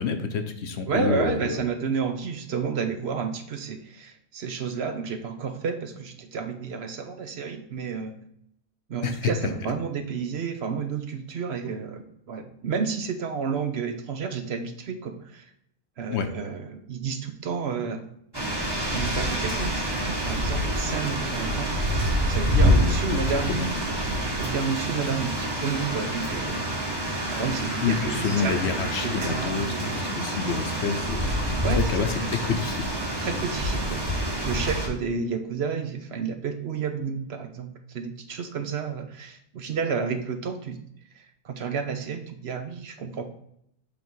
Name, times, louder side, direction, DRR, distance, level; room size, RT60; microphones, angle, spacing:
voice 1, 0.0-1.6 9.0-9.3 16.1-16.3 22.6-23.2 23.5-23.7 27.8-32.9, left 5 dB, 65° left, 7 dB, 0.9 m, -28 dB
voice 2, 0.9-8.2 8.9-15.5 16.0-18.1 18.4-23.6 24.3-26.6 27.3-30.0 31.6-32.2 33.2-34.0 34.4-40.8 41.1-43.2, right 6 dB, 60° right, 7 dB, 0.9 m, -31 dB
sound 1, 18.3-34.9, equal, 20° right, 1.4 m, -27 dB
8.3 x 3.5 x 4.5 m, 0.73 s
omnidirectional pair, 1.3 m